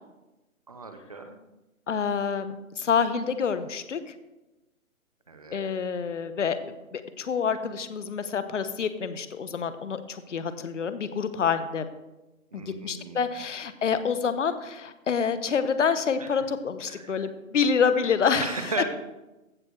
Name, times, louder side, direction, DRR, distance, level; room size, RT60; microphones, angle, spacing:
voice 1, 0.7-1.4 5.3-5.7 12.5-13.2 16.2-16.4 16.9-17.3 18.0-18.1 18.4-18.8, right 4 dB, 25° right, 7 dB, 0.8 m, -36 dB
voice 2, 1.9-4.1 5.5-6.6 6.9-11.8 12.5-18.5, left 6 dB, 55° left, 12 dB, 1.0 m, -27 dB
15.5 x 6.5 x 4.7 m, 1.0 s
hypercardioid pair, 170°, 42 cm